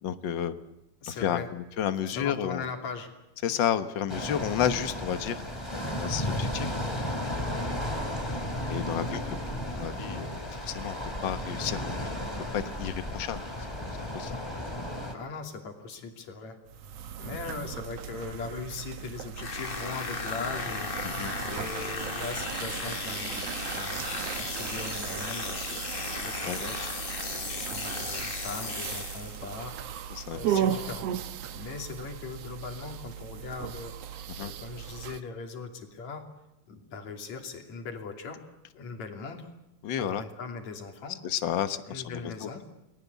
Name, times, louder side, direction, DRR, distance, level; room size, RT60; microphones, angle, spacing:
voice 1, 0.0-0.5 1.1-2.6 3.4-5.4 6.0-6.7 8.7-9.2 9.8-11.0 11.2-12.1 12.5-13.4 14.1-14.3 21.0-21.3 26.4-26.6 30.1-30.8 34.4-34.5 39.8-40.2 41.2-42.5, left 9 dB, 50° left, 10 dB, 1.5 m, -31 dB
voice 2, 1.0-1.5 2.0-3.1 8.9-9.4 15.1-16.6 17.2-23.5 23.7-25.8 26.2-27.2 27.5-29.7 30.3-31.1 31.5-36.2 36.7-38.4 38.7-39.5 40.0-41.2 41.9-42.6, left 4 dB, 70° left, 4 dB, 4.2 m, -40 dB
sound 1, 4.1-15.1, left 1 dB, 10° left, 3.2 m, -34 dB
sound 2, 16.7-35.2, right 9 dB, 65° right, 2.1 m, -37 dB
sound 3, 19.4-29.5, left 4 dB, 30° left, 1.0 m, -36 dB
29.5 x 20.5 x 8.3 m, 0.93 s
omnidirectional pair, 3.3 m